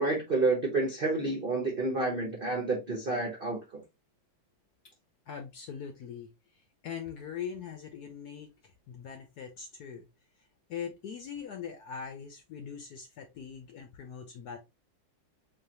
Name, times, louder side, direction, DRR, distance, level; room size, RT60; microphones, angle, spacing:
voice 1, 0.0-3.8, right 3 dB, 65° right, 0.5 m, -29 dB
voice 2, 5.3-6.3 6.8-10.1 10.7-14.6, left 7 dB, 70° left, 0.9 m, -41 dB
3.8 x 3.2 x 2.8 m
omnidirectional pair, 2.2 m